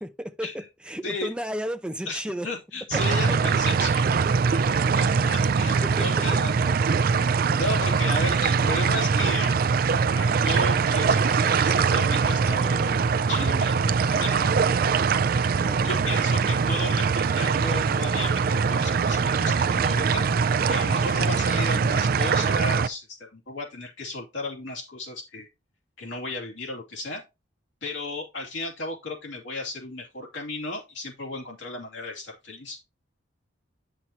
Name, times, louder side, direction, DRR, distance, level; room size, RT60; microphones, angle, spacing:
voice 1, 0.0-2.5 2.9-3.2 5.2-5.3 5.8-6.3 15.6-16.5 21.7-21.8, equal, 5° right, 0.6 m, -34 dB
voice 2, 2.1-7.3 7.6-9.6 10.2-13.0 13.3-14.5 15.8-20.3 20.7-25.5 26.0-27.2 27.8-32.8, left 2 dB, 80° left, 2.8 m, -34 dB
sound 1, 2.9-22.9, right 5 dB, 50° right, 0.4 m, -22 dB
Guitar, 11.0-13.5 14.2-19.7, right 6 dB, 35° left, 5.1 m, -49 dB
9.5 x 6.0 x 2.9 m
head